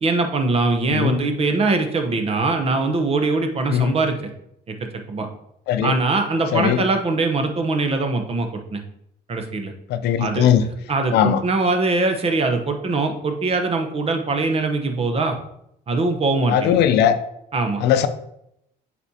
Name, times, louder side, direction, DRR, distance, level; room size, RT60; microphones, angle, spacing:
voice 1, 0.0-4.2 4.7-5.3 5.8-8.8 9.3-9.7 10.2-15.4 15.9-16.8 17.5-17.8, right 3 dB, 35° right, 5 dB, 0.9 m, -22 dB
voice 2, 6.5-6.8 9.9-10.6 11.1-11.4 16.5-17.2 17.8-18.1, left 9 dB, 80° left, 11 dB, 0.5 m, -18 dB
8.2 x 4.3 x 2.8 m, 0.78 s
cardioid pair, 110°, 17 cm